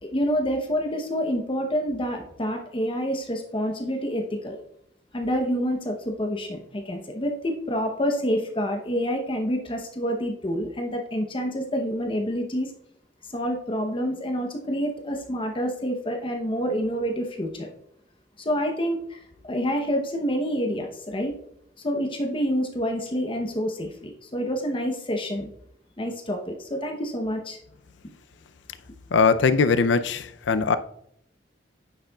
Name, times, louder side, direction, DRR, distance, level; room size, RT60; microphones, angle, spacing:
voice 1, 0.0-4.6 5.1-12.7 13.2-17.7 18.4-21.3 21.8-25.5 26.0-27.6, equal, 30° left, 0.8 m, -28 dB
voice 2, 29.1-30.8, left 5 dB, 80° left, 0.5 m, -20 dB
9.1 x 6.5 x 2.3 m
head